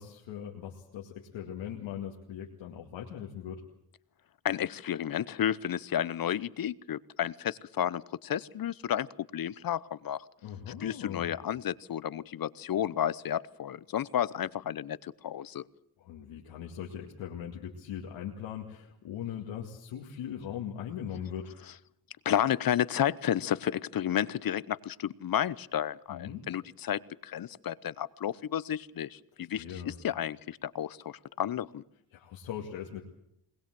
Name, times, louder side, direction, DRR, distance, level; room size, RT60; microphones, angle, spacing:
voice 1, 0.0-3.6 10.4-11.4 16.0-21.5 26.1-26.5 29.4-30.0 32.1-33.0, left 9 dB, 80° left, -1 dB, 2.3 m, -40 dB
voice 2, 4.4-9.1 9.3-10.2 10.8-15.6 22.2-31.8, left 10 dB, 50° left, 19 dB, 0.9 m, -32 dB
21.5 x 20.5 x 7.7 m, 0.74 s
supercardioid pair, 60°, 45 cm